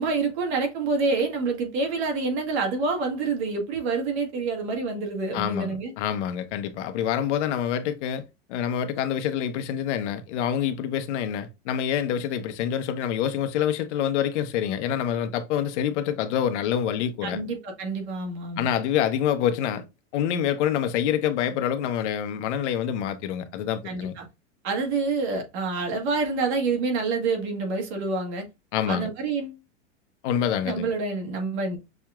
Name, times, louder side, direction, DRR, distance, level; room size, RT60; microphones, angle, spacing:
voice 1, 0.0-5.9 17.2-18.7 23.8-24.3 24.6-28.5 28.9-29.6 30.6-31.8, right 4 dB, 60° right, 2.0 m, -27 dB
voice 2, 5.3-8.2 8.5-17.4 18.6-19.8 20.1-24.1 28.7-29.1 30.2-30.9, left 9 dB, 65° left, 0.9 m, -26 dB
6.1 x 2.9 x 2.3 m
supercardioid pair, 140°, 38 cm